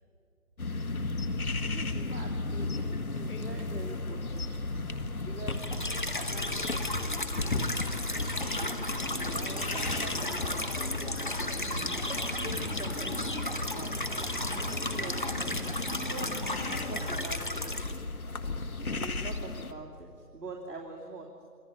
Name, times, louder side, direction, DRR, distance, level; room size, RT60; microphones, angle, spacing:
sound 1, 0.6-19.7, left 3 dB, 65° left, 1.7 m, -35 dB
voice 1, 1.9-4.6 5.2-7.7 9.1-11.5 11.9-13.3 13.7-15.5 16.0-17.9 18.9-21.5, right 2 dB, 85° right, -3 dB, 3.5 m, -45 dB
sound 2, 5.5-17.9, left 1 dB, 30° left, 1.0 m, -34 dB
sound 3, 9.5-17.7, left 2 dB, 50° left, 2.1 m, -42 dB
27.0 x 14.5 x 10.0 m, 2.3 s
figure-of-eight pair, 180°, 46 cm